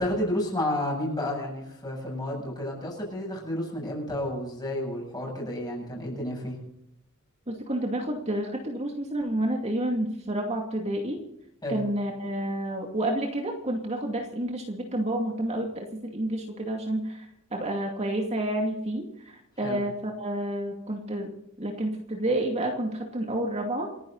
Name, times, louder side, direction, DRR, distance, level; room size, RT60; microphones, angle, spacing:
voice 1, 0.0-6.6 11.6-11.8 19.6-19.8, left 1 dB, 20° left, 0 dB, 7.9 m, -31 dB
voice 2, 7.5-11.2 11.7-23.9, right 1 dB, 30° right, 1 dB, 2.5 m, -30 dB
29.0 x 11.0 x 4.1 m, 0.82 s
head